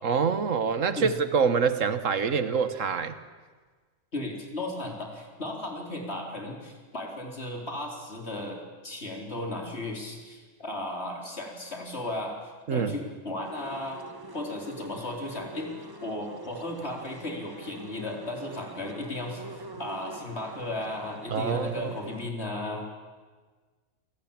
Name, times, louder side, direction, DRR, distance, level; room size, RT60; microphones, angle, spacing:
voice 1, 0.0-3.2 12.7-12.9 21.3-21.9, right 6 dB, 85° right, 11 dB, 1.7 m, -26 dB
voice 2, 4.1-14.0 14.3-19.4 19.8-22.8, left 1 dB, 55° left, 1 dB, 4.4 m, -35 dB
sound 1, 13.4-22.3, right 2 dB, 20° right, 1.5 m, -44 dB
28.5 x 18.0 x 8.8 m, 1.4 s
omnidirectional pair, 1.3 m